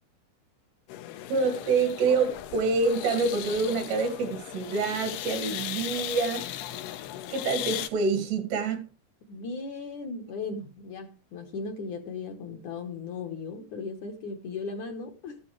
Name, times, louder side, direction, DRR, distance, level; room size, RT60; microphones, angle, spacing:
sound 1, 0.9-7.9, left 13 dB, 80° left, 2.8 m, -37 dB
voice 1, 1.3-6.5 7.3-8.9, right 4 dB, 80° right, 4.3 m, -27 dB
voice 2, 9.2-15.4, left 4 dB, 65° left, 2.1 m, -37 dB
14.5 x 12.0 x 3.3 m
omnidirectional pair, 4.8 m